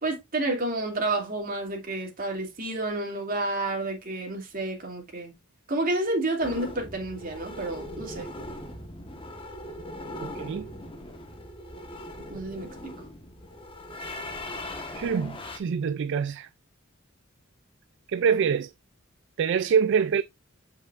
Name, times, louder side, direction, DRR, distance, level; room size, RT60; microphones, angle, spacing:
voice 1, 0.0-5.3 5.7-8.3 12.3-12.9, right 2 dB, 40° right, 2.5 m, -30 dB
sound 1, 6.4-15.6, left 1 dB, 25° left, 1.3 m, -40 dB
voice 2, 10.2-10.7 14.9-16.5 18.1-18.7 19.4-20.2, right 6 dB, 60° right, 0.3 m, -25 dB
7.7 x 5.5 x 2.5 m
head